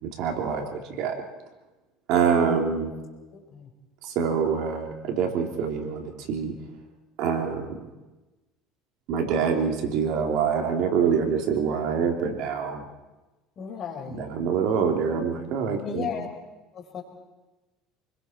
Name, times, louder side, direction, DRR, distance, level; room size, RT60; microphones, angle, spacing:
voice 1, 0.0-1.2 2.1-2.9 4.0-6.5 7.2-7.9 9.1-12.8 14.2-16.1, right 6 dB, 65° right, 4 dB, 3.3 m, -25 dB
voice 2, 3.3-3.7 13.6-14.4 15.8-16.3 16.7-17.0, left 7 dB, 45° left, 3 dB, 4.0 m, -35 dB
29.0 x 21.0 x 4.5 m, 1.1 s
supercardioid pair, 105°, 0 cm